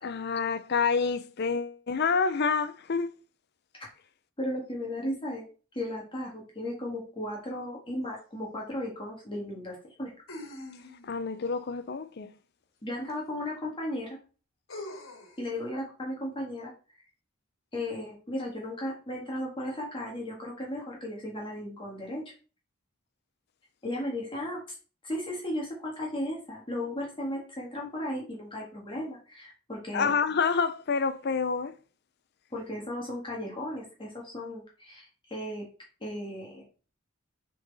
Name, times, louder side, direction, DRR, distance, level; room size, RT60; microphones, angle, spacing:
voice 1, 0.0-3.1 11.0-12.3 29.9-31.8, left 5 dB, 55° left, 0.5 m, -28 dB
voice 2, 4.4-5.4 5.7-10.1 12.8-14.2 15.4-16.7 17.7-22.3 23.8-24.6 25.0-30.1 32.5-35.7 36.0-36.6, left 1 dB, 25° left, 1.5 m, -35 dB
sound 1, 8.2-8.3 10.3-11.2 13.1-13.2 14.7-15.4, left 1 dB, 80° left, 1.8 m, -43 dB
6.6 x 3.9 x 4.0 m
head